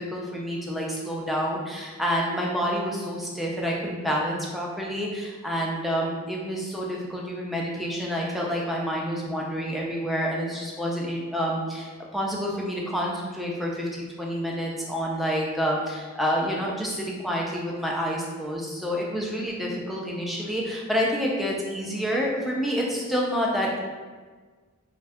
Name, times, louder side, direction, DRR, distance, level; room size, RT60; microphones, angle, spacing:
voice 1, 0.0-23.8, equal, ahead, -3 dB, 0.3 m, -28 dB
2.5 x 2.2 x 3.4 m, 1.4 s
head